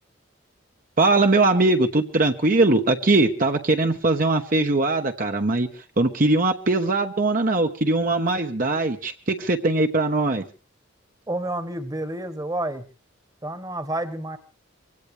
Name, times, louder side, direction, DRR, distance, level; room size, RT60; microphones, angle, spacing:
voice 1, 1.0-5.7 6.0-10.4, right 2 dB, 45° right, 5 dB, 1.1 m, -21 dB
voice 2, 11.3-12.8 13.4-14.4, right 1 dB, 20° right, 9 dB, 1.4 m, -29 dB
24.0 x 17.0 x 3.3 m, 0.36 s
head